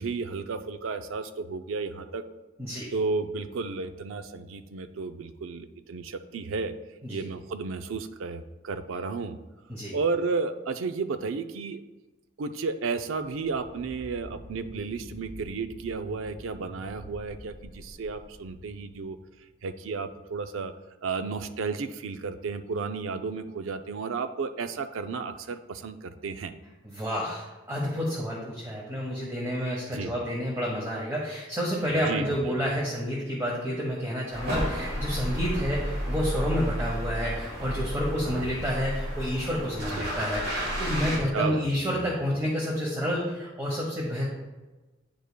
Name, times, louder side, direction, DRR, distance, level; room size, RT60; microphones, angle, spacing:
voice 1, 0.0-2.2 2.9-6.7 7.1-9.4 9.9-11.8 12.4-19.2 19.6-20.7 21.0-26.5 29.9-30.1 32.1-32.6 35.5-35.6 38.3-38.5 40.0-40.1 41.3-41.7 41.9-42.0, right 4 dB, 85° right, 9 dB, 0.4 m, -33 dB
voice 2, 2.6-2.9 7.0-7.3 9.7-10.0 26.8-44.3, equal, 15° right, -4 dB, 1.0 m, -29 dB
sound 1, 13.2-19.6, left 1 dB, 45° left, 0.7 m, -47 dB
sound 2, 34.3-41.2, equal, 55° right, 1.7 m, -32 dB
9.3 x 5.1 x 2.2 m, 1.1 s
head